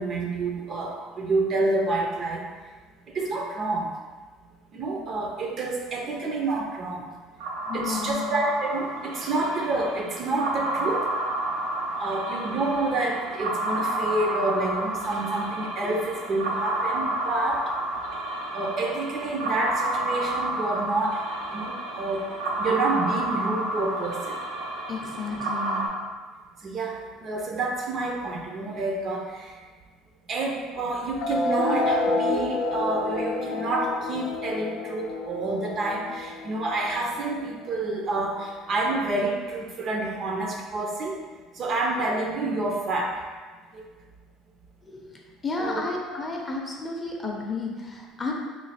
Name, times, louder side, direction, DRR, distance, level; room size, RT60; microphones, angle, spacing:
voice 1, 0.0-2.5 3.1-3.9 4.7-7.1 7.7-11.1 12.0-17.6 18.5-21.2 21.5-22.2 22.6-24.4 26.6-29.5 30.3-41.2 41.5-43.3 43.7-43.8 45.6-45.8, right 2 dB, 40° right, 0 dB, 0.5 m, -28 dB
sound 1, 7.4-25.9, right 1 dB, 85° right, 0.6 m, -30 dB
voice 2, 7.7-8.3 15.8-15.9 24.9-25.8 44.9-45.1 45.4-48.3, left 3 dB, 20° left, -1 dB, 0.6 m, -32 dB
sound 2, 31.2-38.2, left 2 dB, 75° left, 0.5 m, -29 dB
3.1 x 2.3 x 4.1 m, 1.4 s
cardioid pair, 120°, 0 cm